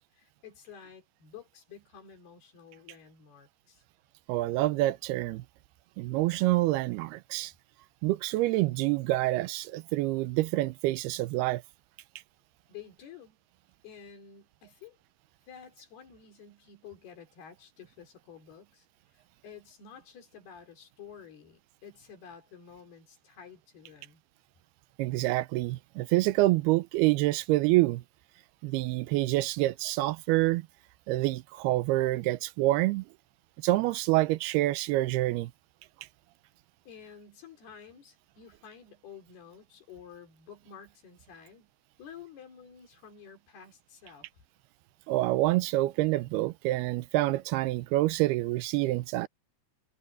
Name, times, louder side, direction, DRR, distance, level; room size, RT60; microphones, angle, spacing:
voice 1, 0.0-3.8 12.7-13.4 13.8-15.0 15.5-18.9 19.1-24.2 36.9-41.7 42.0-44.5, left 7 dB, 75° left, 5.8 m, -51 dB
voice 2, 4.3-5.4 6.0-7.5 8.0-11.6 25.0-28.0 28.6-30.7 31.1-33.1 33.6-35.5 45.1-49.3, right 18 dB, 90° right, 2.7 m, -27 dB
omnidirectional pair, 4.5 m